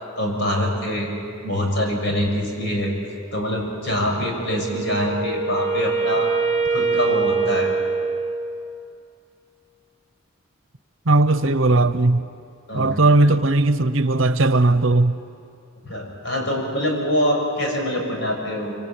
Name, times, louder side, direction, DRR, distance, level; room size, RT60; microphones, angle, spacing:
voice 1, 0.2-1.1 1.4-2.9 3.3-6.3 6.7-7.7 12.7-13.0 15.8-18.8, equal, 60° left, 6.7 m, -24 dB
Wind instrument woodwind instrument, 4.4-8.7, right 4 dB, 20° left, 5.9 m, -24 dB
voice 2, 11.1-12.2 12.7-15.2, right 2 dB, 70° right, 1.0 m, -17 dB
25.5 x 25.0 x 9.2 m
head